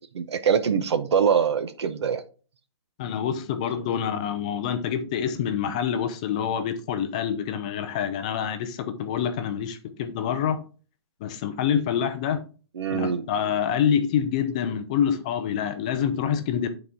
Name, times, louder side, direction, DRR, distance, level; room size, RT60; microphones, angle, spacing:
voice 1, 0.1-2.2 12.8-13.2, right 7 dB, 70° right, 0.8 m, -23 dB
voice 2, 3.0-10.6 11.2-12.4 12.9-16.7, left 8 dB, 15° left, 0.4 m, -26 dB
9.2 x 4.2 x 3.5 m
hypercardioid pair, 175°, 15 cm